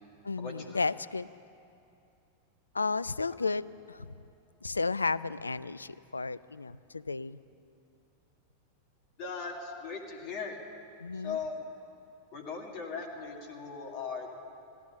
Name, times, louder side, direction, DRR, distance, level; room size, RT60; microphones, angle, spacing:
voice 1, 0.2-1.3 2.7-4.1 4.6-7.4 11.0-11.4, left 4 dB, 80° left, 18 dB, 0.3 m, -33 dB
voice 2, 9.2-10.6 11.1-11.7 12.3-14.3, left 5 dB, 40° left, 1 dB, 1.9 m, -38 dB
16.0 x 11.5 x 7.0 m, 2.6 s
figure-of-eight pair, 90°, 0 cm